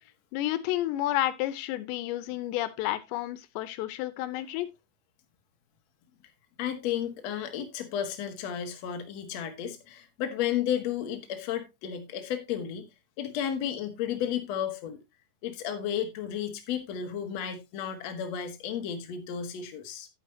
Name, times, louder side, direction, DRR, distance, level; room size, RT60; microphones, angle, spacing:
voice 1, 0.3-4.7, left 14 dB, 90° left, 3.1 m, -30 dB
voice 2, 6.6-12.9 13.2-15.0 15.4-20.1, left 9 dB, 55° left, 2.1 m, -33 dB
11.0 x 9.0 x 2.8 m
omnidirectional pair, 5.0 m